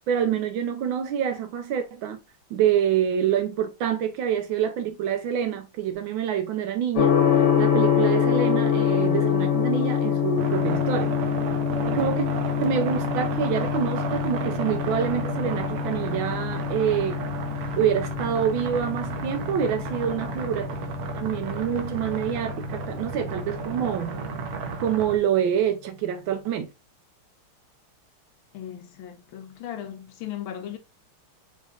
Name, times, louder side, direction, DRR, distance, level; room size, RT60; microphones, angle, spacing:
voice 1, 0.1-2.2 2.5-7.2 7.6-11.1 11.8-12.3 12.6-17.1 17.7-20.7 21.1-24.2 24.8-26.7, right 9 dB, 70° right, 1.4 m, -26 dB
Gong, 7.0-24.8, left 9 dB, 55° left, 1.4 m, -26 dB
sound 1, 10.4-25.2, right 7 dB, 90° right, 0.8 m, -33 dB
voice 2, 28.5-30.8, left 10 dB, 75° left, 1.3 m, -37 dB
4.6 x 3.4 x 2.3 m
omnidirectional pair, 2.4 m